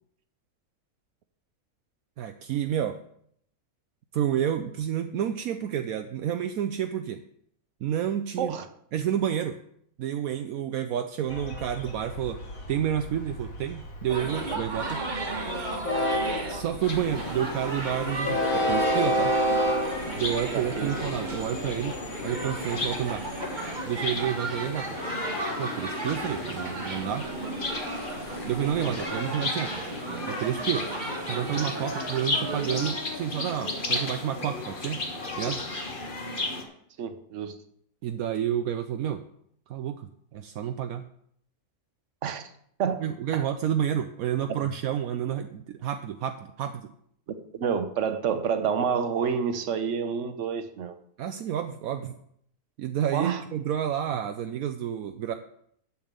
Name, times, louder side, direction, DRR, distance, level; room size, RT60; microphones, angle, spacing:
voice 1, 2.2-3.0 4.1-7.2 7.8-8.6 8.9-9.6 10.0-12.4 12.7-15.0 16.4-19.3 20.1-22.0 22.2-23.2 23.8-25.0 25.6-27.3 28.4-29.7 30.3-30.9 31.3-35.0 35.4-35.6 38.0-39.2 39.7-41.0 43.0-46.9 51.2-52.2 52.8-55.3, right 10 dB, 75° right, 7 dB, 1.1 m, -30 dB
Train, 11.3-24.3, equal, 65° left, 2.1 m, -31 dB
sound 1, 14.1-32.9, right 2 dB, 30° right, 1.5 m, -35 dB
sound 2, 16.8-36.6, left 2 dB, 35° left, 1.6 m, -34 dB
voice 2, 20.5-20.9 28.9-29.0 37.0-37.6 42.2-42.5 42.8-43.0 43.3-43.4 47.3-50.9 53.1-53.4, right 7 dB, 55° right, 9 dB, 1.2 m, -28 dB
7.2 x 7.2 x 8.1 m, 0.69 s
omnidirectional pair, 1.6 m